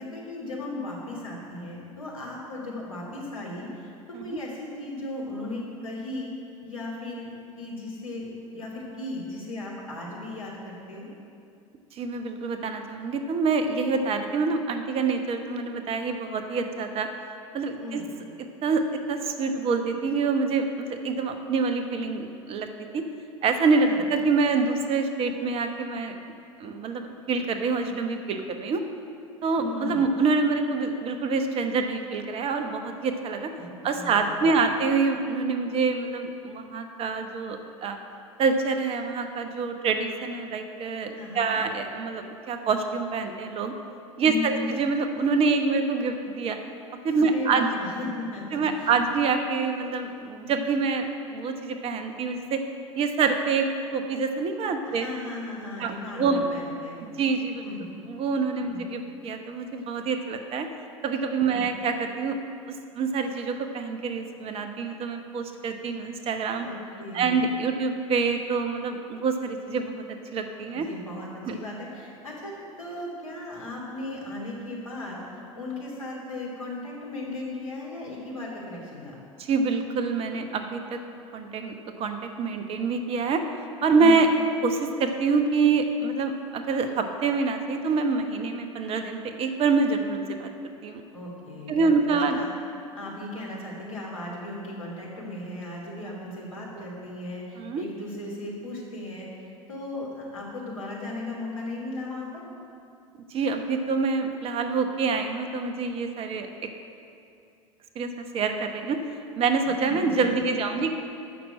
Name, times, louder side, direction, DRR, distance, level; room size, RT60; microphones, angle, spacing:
voice 1, 0.0-6.3 6.6-7.3 7.6-11.1 17.8-18.1 23.8-24.0 29.6-30.0 33.6-34.7 41.1-41.5 44.2-44.7 47.2-48.9 54.8-57.0 57.6-57.9 58.6-58.9 61.4-61.7 66.6-67.4 70.7-75.3 75.5-79.2 84.0-84.3 91.1-92.5 92.9-102.4 109.6-110.3, left 2 dB, 80° left, -4 dB, 3.1 m, -36 dB
voice 2, 11.9-17.1 17.5-18.0 18.6-18.8 19.1-22.7 22.9-23.0 23.4-26.1 26.6-28.8 29.4-33.5 33.8-38.0 38.4-43.7 44.2-46.6 47.0-47.7 48.5-52.6 53.0-55.1 55.8-56.5 57.0-57.6 58.1-60.7 61.0-62.4 63.0-66.7 67.1-69.9 70.3-70.9 71.5-71.6 79.4-81.0 81.3-83.4 83.8-84.3 84.6-90.5 90.8-91.0 91.7-92.4 96.8-96.9 97.6-97.8 103.3-106.5 107.9-109.0 109.4-110.9, right 4 dB, 35° right, 6 dB, 1.0 m, -26 dB
13.0 x 6.1 x 7.6 m, 2.5 s
figure-of-eight pair, 80°, 17 cm